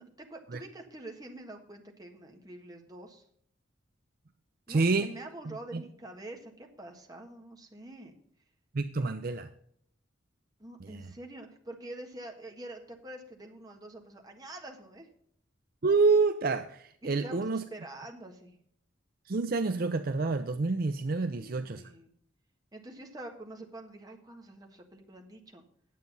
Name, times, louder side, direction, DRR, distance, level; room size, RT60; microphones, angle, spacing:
voice 1, 0.0-3.2 4.7-8.1 10.6-15.1 17.0-18.6 21.2-22.1 22.7-25.6, right 1 dB, 20° right, 2 dB, 1.5 m, -46 dB
voice 2, 4.7-5.1 5.5-5.8 8.7-9.5 10.8-11.0 15.8-17.6 19.3-21.8, right 3 dB, 50° right, 9 dB, 0.5 m, -28 dB
9.5 x 7.9 x 5.4 m, 0.64 s
head